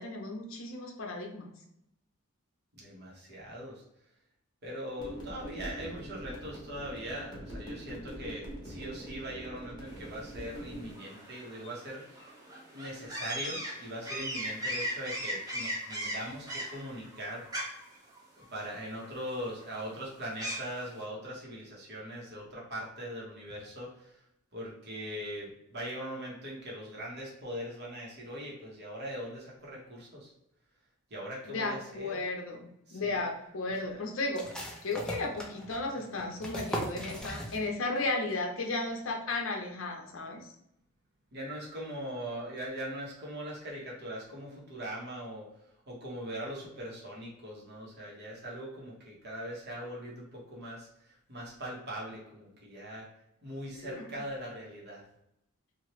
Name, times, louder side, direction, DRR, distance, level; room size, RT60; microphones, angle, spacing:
voice 1, 0.0-1.5 31.5-34.4 34.8-40.4 53.8-54.1, left 2 dB, 65° left, 2 dB, 0.7 m, -34 dB
voice 2, 2.8-3.8 4.6-12.3 12.7-17.4 18.4-24.2 24.5-30.3 31.1-32.1 32.9-33.2 33.8-33.9 35.9-36.0 41.3-45.5 45.9-53.1 53.4-55.0, equal, 50° right, -4 dB, 1.1 m, -41 dB
sound 1, 5.0-10.9, equal, 20° left, 0.9 m, -43 dB
sound 2, 9.9-20.9, equal, 20° right, 0.8 m, -39 dB
sound 3, 34.3-38.0 38.3-38.4 38.8-39.3, equal, 5° left, 0.4 m, -39 dB
2.9 x 2.4 x 3.0 m, 0.79 s
head